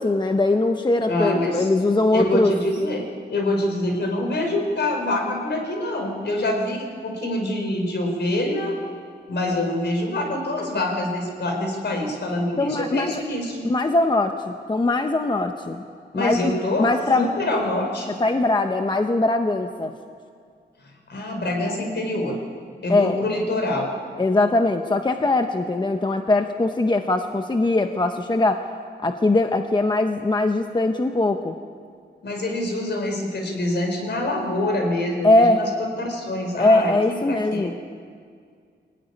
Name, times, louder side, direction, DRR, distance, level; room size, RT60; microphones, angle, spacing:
voice 1, 0.0-2.5 12.6-13.2 13.6-15.8 16.1-17.3 18.2-20.0 22.9-23.2 24.2-28.6 29.0-31.6 35.2-35.6 36.6-37.8, left 2 dB, 25° left, 5 dB, 0.9 m, -21 dB
voice 2, 1.1-1.7 2.1-8.8 9.3-13.6 16.1-16.9 17.2-18.1 21.1-22.4 22.8-23.9 32.2-35.7 36.0-37.7, left 1 dB, 65° left, 2 dB, 4.5 m, -25 dB
23.5 x 17.5 x 10.0 m, 2.1 s
wide cardioid pair, 175°, 19 cm